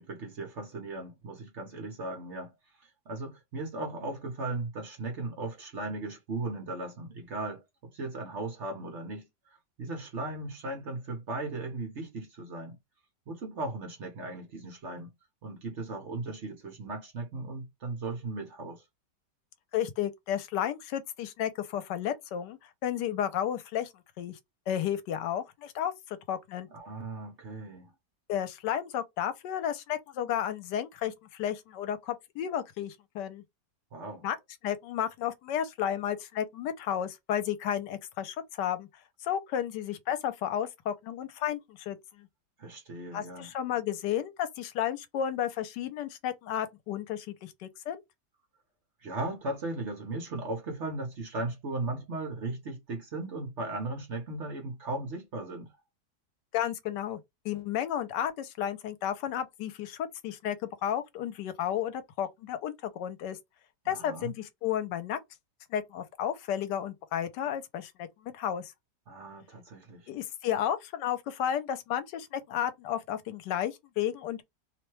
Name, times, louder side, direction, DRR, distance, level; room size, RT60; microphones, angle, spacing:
voice 1, 0.0-2.5 2.8-12.8 13.3-15.1 15.4-18.8 26.7-27.9 33.9-34.3 42.6-43.5 49.0-55.7 63.8-64.3 69.1-70.1, right 2 dB, 50° right, 0.9 m, -37 dB
voice 2, 19.7-23.9 24.2-24.4 24.7-26.7 28.3-33.4 34.2-34.4 34.6-38.9 39.2-42.3 43.1-48.0 56.5-57.2 57.4-60.6 60.8-63.4 63.9-65.2 65.7-68.7 70.1-74.4, left 10 dB, 85° left, 1.2 m, -32 dB
2.9 x 2.1 x 3.0 m
omnidirectional pair, 1.8 m